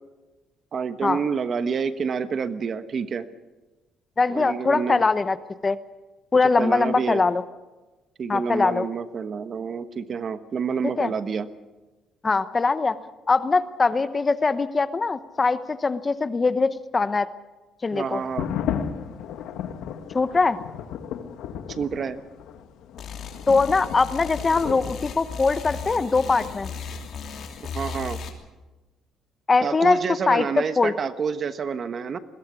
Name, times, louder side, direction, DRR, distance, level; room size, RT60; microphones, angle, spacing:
voice 1, 0.7-3.3 4.3-5.0 6.6-7.2 8.2-11.5 17.9-18.5 21.7-22.2 27.6-28.2 29.6-32.2, right 6 dB, 45° right, 11 dB, 1.2 m, -28 dB
voice 2, 4.2-5.4 5.6-5.8 6.3-7.4 8.3-8.9 10.8-11.1 12.2-13.0 13.3-17.3 17.8-18.2 20.1-20.6 23.5-26.7 29.5-30.0 30.3-30.5 30.8-30.9, left 4 dB, 25° left, 13 dB, 0.9 m, -22 dB
sound 1, 18.1-27.6, left 8 dB, 80° left, 1.7 m, -35 dB
sound 2, 23.0-28.3, left 5 dB, 55° left, 3.0 m, -36 dB
21.5 x 17.5 x 8.3 m, 1.2 s
cardioid pair, 120°, 0 cm